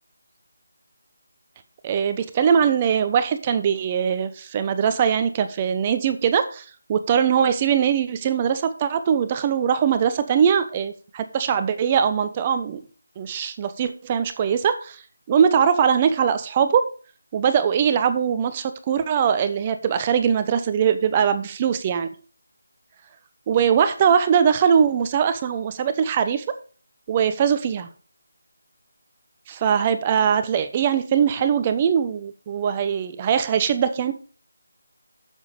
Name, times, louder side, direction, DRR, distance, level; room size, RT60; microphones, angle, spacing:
voice 1, 1.8-12.8 13.2-15.0 15.3-16.9 17.3-22.1 23.5-26.4 27.1-27.9 29.5-34.1, right 7 dB, 25° right, 10 dB, 0.9 m, -21 dB
9.6 x 7.3 x 5.0 m, 0.40 s
figure-of-eight pair, 160°, 0 cm